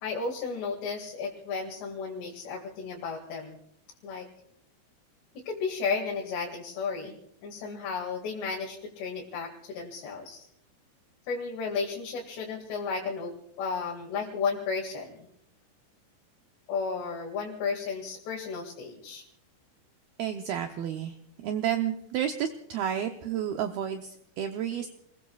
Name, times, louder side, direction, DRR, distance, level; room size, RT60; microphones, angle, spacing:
voice 1, 0.0-3.6 4.0-4.3 5.4-10.5 11.3-15.3 16.7-19.2, left 5 dB, 70° left, -2 dB, 4.0 m, -33 dB
voice 2, 20.2-21.1 21.4-24.9, right 9 dB, 85° right, 5 dB, 2.1 m, -31 dB
29.0 x 21.0 x 2.3 m, 0.71 s
omnidirectional pair, 5.4 m